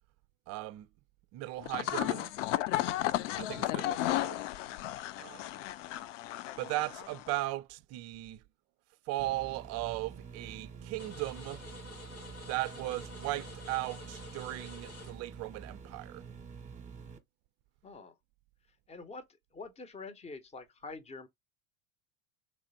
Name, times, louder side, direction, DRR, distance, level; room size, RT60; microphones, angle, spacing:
voice 1, 0.5-0.9 1.3-2.3 3.4-4.4 5.2-5.6 6.6-8.4 9.1-11.6 12.5-16.2, right 17 dB, 40° right, 0.5 m, -37 dB
sound 1, 1.6-7.4, left 14 dB, 65° left, 0.5 m, -34 dB
sound 2, 9.2-17.2, right 6 dB, 15° right, 1.0 m, -48 dB
sound 3, 11.0-16.2, left 3 dB, 90° left, 1.4 m, -50 dB
voice 2, 17.8-18.1 18.9-19.2 19.5-21.3, left 3 dB, 15° left, 0.9 m, -45 dB
3.4 x 3.2 x 4.1 m
figure-of-eight pair, 75°, 41 cm